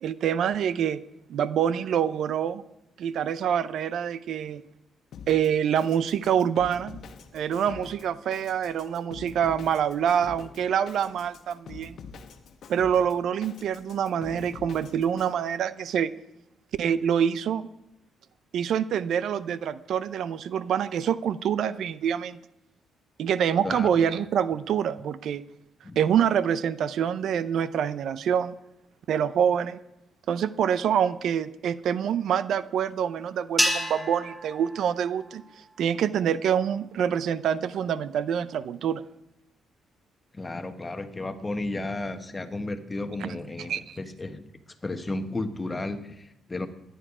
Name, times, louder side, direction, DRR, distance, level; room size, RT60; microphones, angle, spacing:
voice 1, 0.0-1.0 1.3-2.6 3.0-4.6 5.3-7.0 7.3-12.0 12.7-16.1 16.8-17.7 18.5-22.4 23.2-25.4 26.0-28.5 29.1-29.8 30.3-35.4 35.8-39.0 43.2-43.3 43.7-44.0, right 8 dB, 70° right, 15 dB, 0.6 m, -26 dB
Drum kit, 5.1-15.3, left 5 dB, 65° left, 1.1 m, -46 dB
voice 2, 23.6-24.0 25.8-26.0 40.3-44.4 44.8-46.7, left 2 dB, 20° left, 9 dB, 1.2 m, -33 dB
sound 1, 33.6-36.0, equal, ahead, 1.9 m, -30 dB
17.0 x 10.5 x 4.9 m, 0.84 s
cardioid pair, 90°, 0 cm